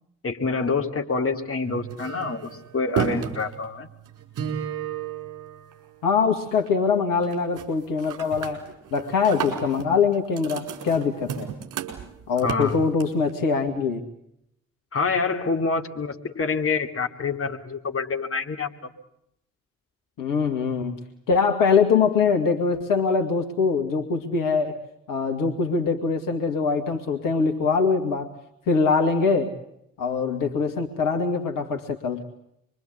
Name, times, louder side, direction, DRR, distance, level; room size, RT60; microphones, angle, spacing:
voice 1, 0.2-3.9 12.4-12.8 14.9-18.7, left 4 dB, 35° left, 3 dB, 2.7 m, -26 dB
sound 1, 1.6-6.2 6.5-6.9 7.2-7.7 8.0-13.3, right 8 dB, 55° right, 4.9 m, -33 dB
voice 2, 6.0-8.6 8.9-11.5 12.3-14.0 20.2-21.0 21.3-24.8 25.1-28.3 28.7-29.5 30.0-32.2, left 5 dB, 60° left, 3 dB, 2.1 m, -23 dB
26.0 x 23.5 x 8.4 m, 0.77 s
figure-of-eight pair, 40°, 37 cm